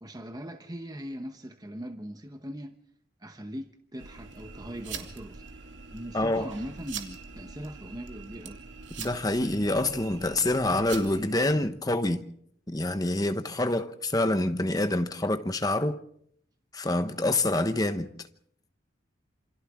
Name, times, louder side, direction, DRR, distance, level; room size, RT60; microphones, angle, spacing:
voice 1, 0.0-2.7 3.2-5.4 5.9-8.6, equal, 20° right, 1.0 m, -40 dB
sound 1, 4.0-11.7, right 5 dB, 80° right, 2.5 m, -43 dB
voice 2, 6.1-6.5 9.0-12.2 12.7-16.0 16.7-18.1, left 2 dB, 20° left, 1.1 m, -26 dB
28.0 x 27.0 x 3.7 m
head